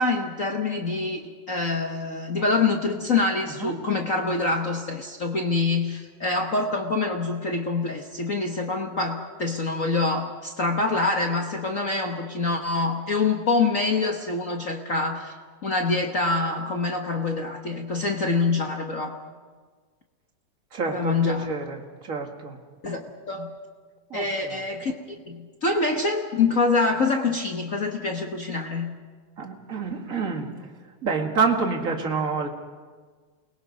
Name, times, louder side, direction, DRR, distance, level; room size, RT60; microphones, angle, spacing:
voice 1, 0.0-15.3 15.6-19.2 20.8-21.5 22.8-23.5 24.1-29.0, left 3 dB, 85° left, 2 dB, 0.7 m, -25 dB
voice 2, 20.7-22.6 24.1-24.6 29.4-30.5 31.0-32.5, right 4 dB, 30° right, 2 dB, 1.8 m, -28 dB
29.5 x 21.5 x 5.4 m, 1.5 s
omnidirectional pair, 3.6 m